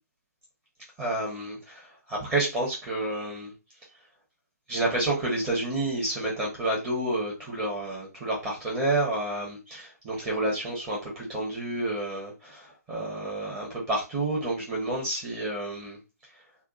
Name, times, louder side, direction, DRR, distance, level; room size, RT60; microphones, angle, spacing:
voice 1, 1.0-3.5 4.7-16.0, right 2 dB, 15° right, -5 dB, 1.2 m, -30 dB
3.5 x 2.4 x 2.6 m, 0.27 s
figure-of-eight pair, 135°, 9 cm